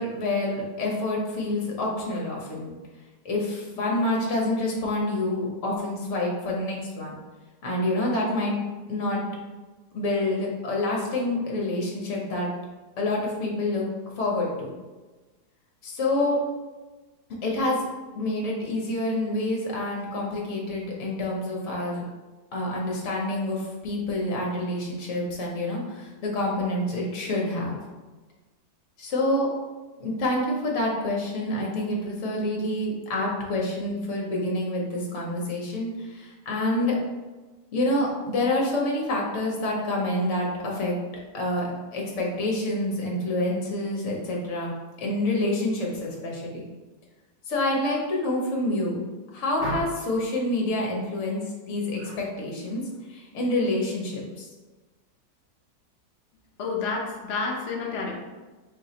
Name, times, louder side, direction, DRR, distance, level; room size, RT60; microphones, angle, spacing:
voice 1, 0.0-2.7 3.2-7.2 7.6-8.6 8.9-9.2 9.9-12.5 13.0-13.8 14.2-14.7 15.8-16.4 17.4-17.9 18.1-22.0 22.5-27.8 29.0-29.5 30.0-37.0 37.7-40.9 41.3-44.7 45.0-46.6 47.5-49.1 49.3-52.8 53.1-54.5, left 1 dB, 50° left, -2 dB, 1.1 m, -27 dB
sound 1, 49.6-50.2 51.9-52.2 52.6-53.0, right 2 dB, 10° right, 1.2 m, -35 dB
voice 2, 56.6-58.1, left 4 dB, 70° left, -1 dB, 0.6 m, -29 dB
3.9 x 3.0 x 2.8 m, 1.2 s
omnidirectional pair, 1.9 m